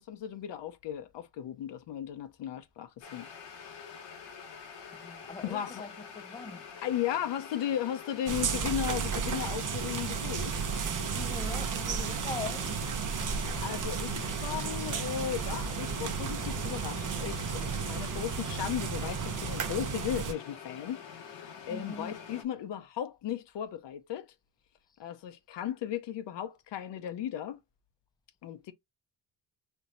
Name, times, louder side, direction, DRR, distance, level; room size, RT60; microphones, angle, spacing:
voice 1, 0.0-3.3 3.5-4.0 5.5-5.8 6.8-10.6 12.0-12.1 13.6-21.0 21.3-24.3 25.0-27.6 28.4-28.7, left 10 dB, 70° left, 0.8 m, -36 dB
sound 1, 3.0-22.4, left 6 dB, 90° left, 1.2 m, -46 dB
voice 2, 4.9-6.7 11.1-12.8 21.7-22.2, left 4 dB, 10° left, 0.6 m, -42 dB
sound 2, 8.3-20.3, right 6 dB, 45° right, 0.8 m, -33 dB
sound 3, 13.3-20.2, left 2 dB, 20° right, 1.4 m, -51 dB
4.4 x 3.0 x 2.5 m
cardioid pair, 70°, 45 cm